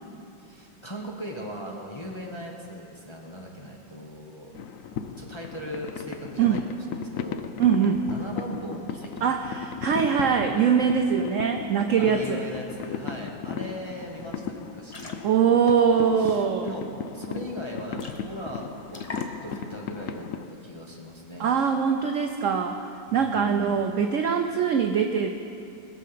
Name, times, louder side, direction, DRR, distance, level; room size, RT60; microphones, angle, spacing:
voice 1, 0.4-4.6 5.2-9.3 12.0-15.1 16.2-16.9 17.1-21.5 23.1-23.8, equal, 20° left, -1 dB, 0.9 m, -39 dB
sound 1, 4.5-20.5, left 7 dB, 80° left, 0.7 m, -37 dB
voice 2, 7.6-8.0 9.2-12.4 15.2-16.7 21.4-22.8 23.1-25.3, right 7 dB, 75° right, 5 dB, 0.7 m, -22 dB
sound 2, 13.5-13.7 14.0-14.2 14.7-16.8 17.2-17.3 17.6-17.7 17.9-18.5 18.9-19.8, left 2 dB, 40° left, 0.5 m, -44 dB
20.0 x 7.5 x 5.7 m, 2.6 s
omnidirectional pair, 2.1 m